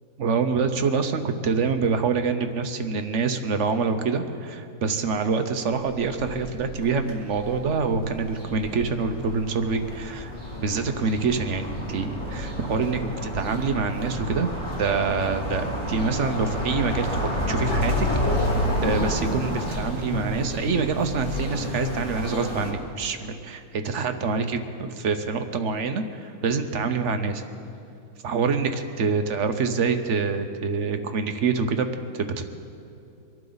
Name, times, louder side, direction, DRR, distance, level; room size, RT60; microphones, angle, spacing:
voice 1, 0.2-10.3 10.6-14.5 14.8-18.1 18.8-27.4 28.2-31.9 32.1-32.4, right 5 dB, 50° right, 7 dB, 1.0 m, -26 dB
sound 1, 5.7-22.7, left 1 dB, 30° left, 4.1 m, -30 dB
24.5 x 12.5 x 4.0 m, 2.7 s
omnidirectional pair, 1.9 m